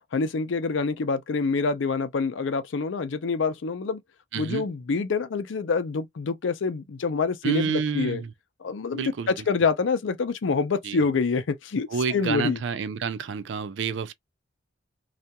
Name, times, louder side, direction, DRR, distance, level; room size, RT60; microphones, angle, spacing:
voice 1, 0.1-4.0 4.4-8.2 8.6-12.6, left 4 dB, 85° left, 0.5 m, -26 dB
voice 2, 4.3-4.7 7.4-8.3 8.9-9.3 10.8-11.0 11.9-14.1, right 5 dB, 75° right, 0.4 m, -29 dB
2.7 x 2.4 x 2.2 m
head